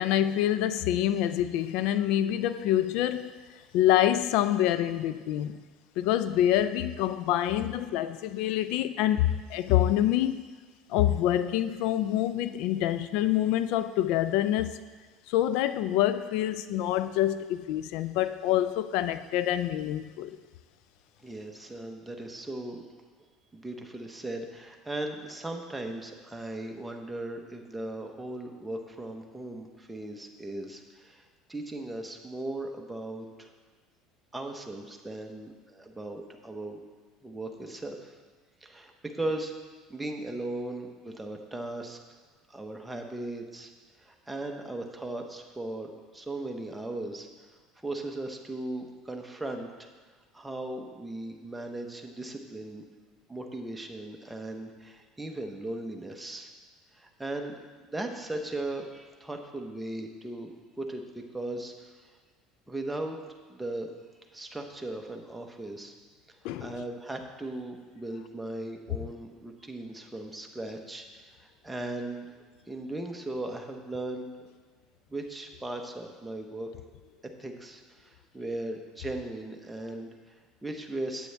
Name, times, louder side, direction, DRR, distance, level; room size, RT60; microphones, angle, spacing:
voice 1, 0.0-3.3 3.7-5.6 6.0-10.4 10.9-14.7 15.3-20.4 66.4-66.7, left 12 dB, 75° left, 12 dB, 0.3 m, -26 dB
voice 2, 21.2-22.8 23.5-33.5 34.3-36.8 37.2-38.2 38.6-39.5 39.9-42.0 42.5-43.7 44.0-47.3 47.8-49.9 50.3-52.8 53.3-56.5 56.9-57.6 57.9-61.9 62.7-63.9 64.3-65.9 66.6-72.3 72.7-74.5 75.1-76.7 77.4-81.3, right 2 dB, 10° right, 3 dB, 1.0 m, -38 dB
9.3 x 8.4 x 3.4 m, 1.4 s
supercardioid pair, 110°, 0 cm